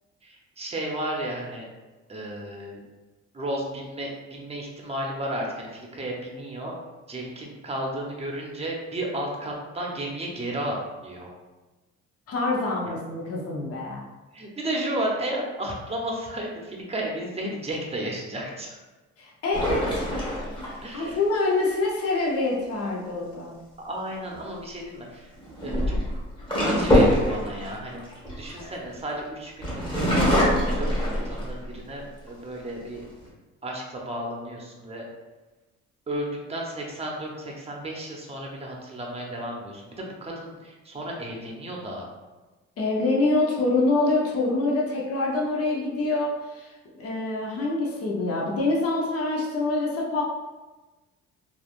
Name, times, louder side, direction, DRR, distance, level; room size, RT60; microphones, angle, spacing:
voice 1, 0.2-1.7 2.1-2.8 3.3-6.7 7.1-10.8 11.0-11.3 12.8-13.0 14.3-18.8 20.8-21.2 23.8-25.3 25.6-26.2 26.6-28.1 28.4-33.0 33.6-35.0 36.1-42.1, right 1 dB, 20° right, -1 dB, 0.7 m, -33 dB
voice 2, 12.3-14.0 19.2-20.1 20.9-23.5 42.8-50.2, left 2 dB, 50° left, -3 dB, 0.7 m, -25 dB
sound 1, 19.5-21.1 24.1-24.4 25.4-29.1 29.6-31.7 32.3-32.4 32.7-33.3, equal, 15° left, 1.3 m, -24 dB
3.2 x 2.4 x 2.4 m, 1.2 s
cardioid pair, 90°, 30 cm